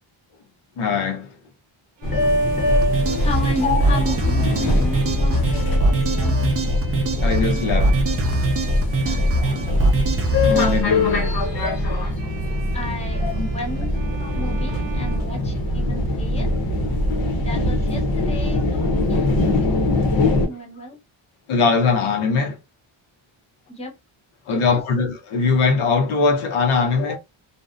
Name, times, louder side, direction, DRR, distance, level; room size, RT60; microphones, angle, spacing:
voice 1, 0.8-1.3 3.6-3.8 7.2-8.0 9.4-9.8 10.4-11.4 13.2-13.5 21.5-22.6 24.5-27.2, left 4 dB, 85° left, 0.7 m, -21 dB
sound 1, 2.0-20.5, left 1 dB, 50° left, 0.7 m, -23 dB
Bowed string instrument, 2.0-16.1, right 6 dB, 65° right, 0.7 m, -40 dB
sound 2, 2.7-10.8, right 1 dB, 30° right, 0.4 m, -21 dB
voice 2, 3.2-6.4 9.1-9.7 12.7-16.5 17.4-19.3 20.2-21.0 23.7-24.0 24.5-24.8, equal, 15° left, 0.7 m, -33 dB
2.6 x 2.0 x 2.3 m
wide cardioid pair, 130°, 48 cm